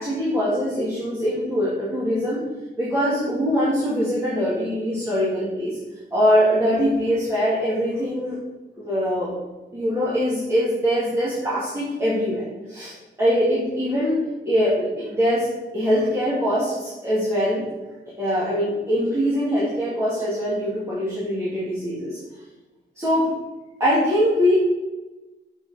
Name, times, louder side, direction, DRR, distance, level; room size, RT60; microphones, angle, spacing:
voice 1, 0.0-2.4 2.8-5.8 6.1-8.4 8.8-9.3 9.7-12.9 13.2-14.1 14.4-15.5 15.7-17.6 18.2-22.2 23.0-23.3 23.8-24.5, equal, 15° right, -10 dB, 2.2 m, -22 dB
6.9 x 6.1 x 4.2 m, 1.1 s
wide cardioid pair, 135°, 19 cm